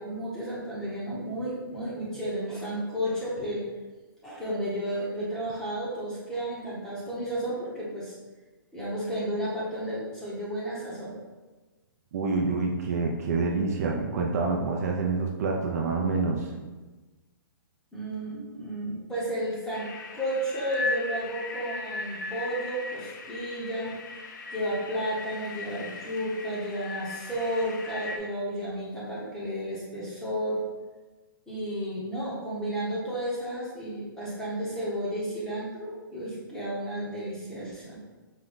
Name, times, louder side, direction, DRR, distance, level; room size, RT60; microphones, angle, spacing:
voice 1, 0.0-3.6 4.2-8.2 8.7-11.1 17.9-24.0 24.5-30.6 31.5-38.0, right 1 dB, 5° left, -7 dB, 0.9 m, -32 dB
voice 2, 12.1-16.5, right 4 dB, 45° right, 0 dB, 0.5 m, -27 dB
sound 1, 19.7-28.2, left 3 dB, 55° left, 0.5 m, -37 dB
5.0 x 2.2 x 3.9 m, 1.2 s
hypercardioid pair, 160°, 12 cm